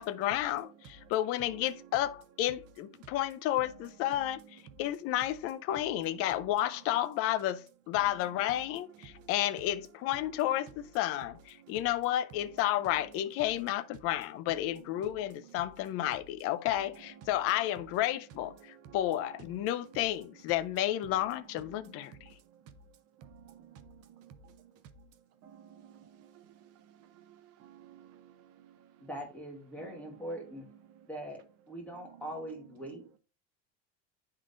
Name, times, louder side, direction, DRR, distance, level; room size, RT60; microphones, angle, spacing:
voice 1, 0.0-22.3, left 13 dB, 45° left, 0.5 m, -32 dB
voice 2, 18.6-19.0 21.7-22.6 23.2-24.7 25.4-29.1 29.9-30.0, right 8 dB, 45° right, 0.7 m, -55 dB
voice 3, 29.0-30.7 31.1-33.2, right 1 dB, 5° left, 1.2 m, -42 dB
9.9 x 3.7 x 2.5 m
cardioid pair, 150°, 34 cm